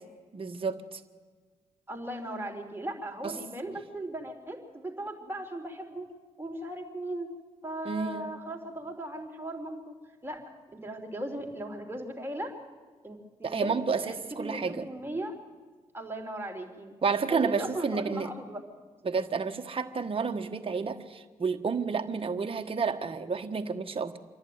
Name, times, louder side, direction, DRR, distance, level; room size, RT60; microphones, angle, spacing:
voice 1, 0.3-1.0 3.2-3.3 7.8-8.3 13.4-14.9 17.0-18.3 19.0-24.2, right 5 dB, 45° right, 6 dB, 1.4 m, -30 dB
voice 2, 1.9-6.1 6.4-7.3 7.6-9.9 10.2-10.4 10.7-12.5 13.0-15.3 15.9-16.9 17.3-18.6, right 1 dB, 15° right, 1 dB, 3.5 m, -37 dB
27.0 x 11.5 x 9.5 m, 1.4 s
cardioid pair, 70°, 13 cm